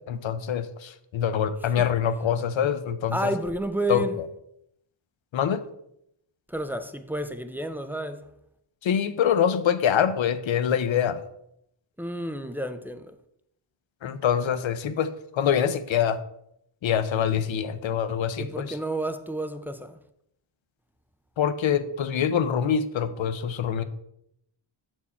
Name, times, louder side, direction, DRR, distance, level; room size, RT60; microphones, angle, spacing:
voice 1, 0.1-3.3 3.9-4.0 5.3-5.6 8.8-11.2 14.0-16.2 16.8-18.7 21.4-23.8, left 8 dB, 70° left, 0.6 m, -25 dB
voice 2, 3.1-4.2 6.5-8.3 12.0-13.2 18.4-20.0, right 1 dB, 5° right, 0.3 m, -31 dB
7.0 x 4.5 x 4.2 m
wide cardioid pair, 95°, 49 cm